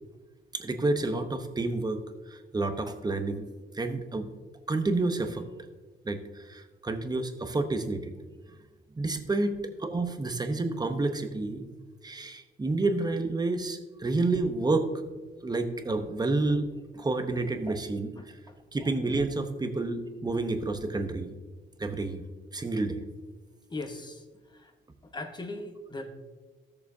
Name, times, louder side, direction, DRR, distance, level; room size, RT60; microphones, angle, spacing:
voice 1, 0.5-2.0 2.3-3.4 3.7-4.3 4.7-5.4 6.0-8.1 9.0-9.5 9.8-11.7 12.0-14.9 15.4-16.7 16.9-18.1 18.7-21.4 21.8-22.2 22.5-23.0, right 2 dB, 20° right, 7 dB, 0.9 m, -29 dB
voice 2, 23.7-24.2 25.1-26.1, left 2 dB, 20° left, 5 dB, 1.2 m, -38 dB
13.5 x 6.9 x 2.8 m, 1.3 s
cardioid pair, 90°, 20 cm